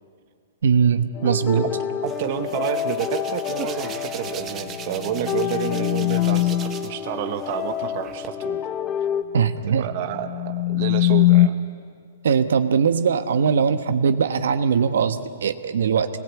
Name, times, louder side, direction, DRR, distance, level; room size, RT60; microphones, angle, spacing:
voice 1, 0.6-1.6 9.3-9.9 12.2-16.1, right 6 dB, 80° right, 10 dB, 1.2 m, -20 dB
sound 1, 1.1-9.2, left 9 dB, 15° left, 0.8 m, -29 dB
Hands, 2.0-7.0 7.4-8.3, right 8 dB, 15° right, 0.9 m, -39 dB
voice 2, 2.0-8.7 9.7-11.5, right 11 dB, 35° right, 8 dB, 1.1 m, -30 dB
sound 2, 4.6-6.9 9.9-11.5, left 15 dB, 70° left, 0.8 m, -21 dB
26.0 x 19.5 x 8.4 m, 2.1 s
hypercardioid pair, 170°, 0 cm